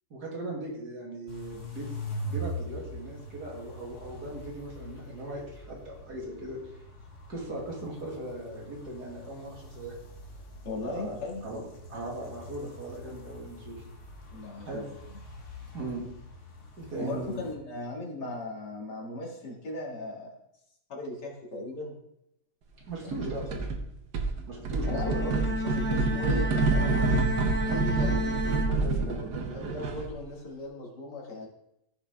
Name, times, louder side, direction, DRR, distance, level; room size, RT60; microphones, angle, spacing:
voice 1, 0.1-1.9 2.2-6.6 7.3-9.9 10.8-11.2 11.4-13.8 14.7-14.8 15.7-16.0 16.8-17.4 22.9-23.5 24.4-25.3 28.8-29.9, right 2 dB, 70° right, -2 dB, 2.8 m, -38 dB
sound 1, 1.3-17.5, equal, 50° left, 1.8 m, -43 dB
voice 2, 10.6-11.4 14.3-14.8 17.0-20.4 20.9-21.9 23.0-23.3 24.9-25.1 25.5-27.1 27.6-28.2 29.5-31.5, left 2 dB, 85° left, -3 dB, 2.8 m, -37 dB
sound 2, 23.1-23.8 24.1-30.2, right 3 dB, 90° right, 1.6 m, -28 dB
Bowed string instrument, 24.7-29.4, left 1 dB, 10° left, 0.8 m, -32 dB
14.5 x 5.7 x 3.5 m, 0.81 s
omnidirectional pair, 1.8 m